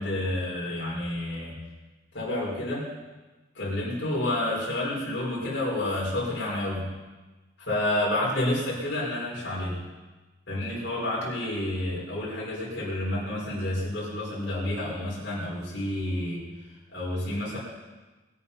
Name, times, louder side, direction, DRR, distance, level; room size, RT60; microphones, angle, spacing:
voice 1, 0.0-1.6 2.1-2.9 3.5-6.9 7.6-9.8 10.5-16.4 16.9-17.6, left 1 dB, 65° left, -6 dB, 5.3 m, -29 dB
22.0 x 8.7 x 5.7 m, 1.2 s
head